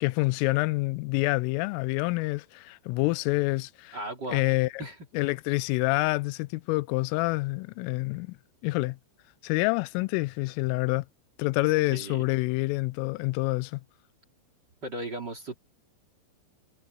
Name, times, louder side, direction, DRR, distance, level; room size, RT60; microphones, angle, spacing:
voice 1, 0.0-4.0 4.3-4.8 5.1-8.4 8.6-9.0 9.4-11.1 11.4-13.8, left 22 dB, 85° left, 3.1 m, -27 dB
voice 2, 3.9-4.4 4.8-5.0 11.9-12.2 14.8-15.5, right 1 dB, 25° right, 2.7 m, -36 dB
omnidirectional pair, 6.0 m